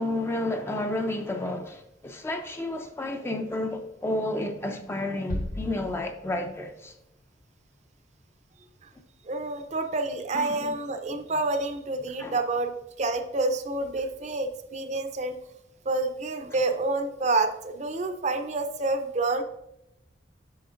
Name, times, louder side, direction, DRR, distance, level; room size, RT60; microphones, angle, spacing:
voice 1, 0.0-6.9 10.3-10.7 12.2-12.4, left 1 dB, 15° left, 0.4 m, -31 dB
sound 1, 5.3-6.7, left 1 dB, 45° left, 0.8 m, -35 dB
voice 2, 9.2-12.7 13.0-15.4 15.9-19.4, right 2 dB, 35° right, 0.5 m, -28 dB
8.5 x 6.6 x 2.5 m
head